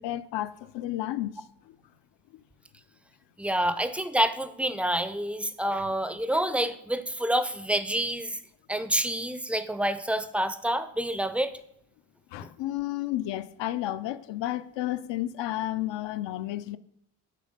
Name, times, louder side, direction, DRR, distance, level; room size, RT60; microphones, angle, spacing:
voice 1, 0.0-1.4 12.3-16.8, left 14 dB, 60° left, 0.5 m, -32 dB
voice 2, 3.4-8.4 8.7-11.5, right 1 dB, 5° right, 0.4 m, -28 dB
7.7 x 3.4 x 5.2 m
supercardioid pair, 50°, 50 cm